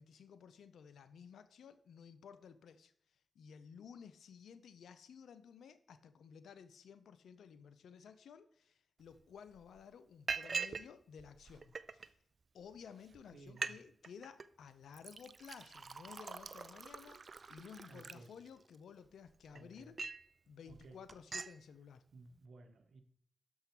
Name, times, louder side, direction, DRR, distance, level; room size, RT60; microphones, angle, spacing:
voice 1, 0.0-2.9 3.4-12.2 12.5-20.0 20.5-22.0, left 7 dB, 85° left, 13 dB, 0.5 m, -55 dB
Liquid, 9.1-9.2 9.5-9.8 10.3-10.9 11.2-12.1 12.7-12.8 13.1-13.2 13.5-13.8 14.0-14.5 14.9-18.8 19.3-20.3 20.7-20.8 21.1-21.6, right 5 dB, 60° right, 0.4 m, -43 dB
voice 2, 13.3-13.8 17.9-18.3 19.5-19.9 20.7-21.0 22.1-23.0, right 3 dB, 75° right, 8 dB, 0.9 m, -57 dB
6.6 x 5.5 x 4.5 m, 0.64 s
supercardioid pair, 40°, 0 cm